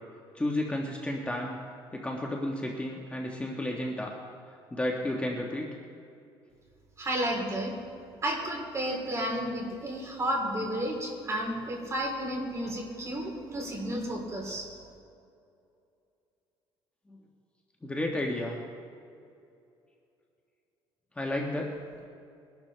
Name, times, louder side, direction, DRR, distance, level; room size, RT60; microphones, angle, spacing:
voice 1, 0.3-1.6 1.9-4.1 4.5-5.7 17.1-17.2 17.8-18.6 21.2-21.7, left 1 dB, 10° left, -1 dB, 1.4 m, -32 dB
voice 2, 7.0-7.7 8.2-14.7, right 1 dB, 30° right, 0 dB, 3.6 m, -32 dB
22.0 x 11.5 x 3.4 m, 2.5 s
cardioid pair, 110°, 10 cm